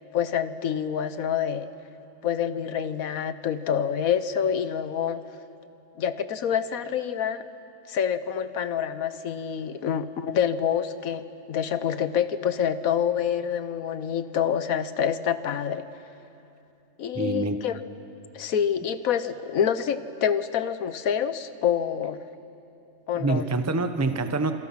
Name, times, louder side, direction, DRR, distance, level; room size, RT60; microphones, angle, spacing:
voice 1, 0.1-1.7 2.2-5.2 6.0-7.5 7.9-15.9 17.0-17.8 18.3-22.2 23.1-23.5, left 8 dB, 80° left, 12 dB, 1.3 m, -27 dB
voice 2, 17.1-17.6 23.1-24.5, right 3 dB, 15° right, 7 dB, 0.8 m, -26 dB
29.5 x 26.5 x 5.8 m, 2.8 s
omnidirectional pair, 1.5 m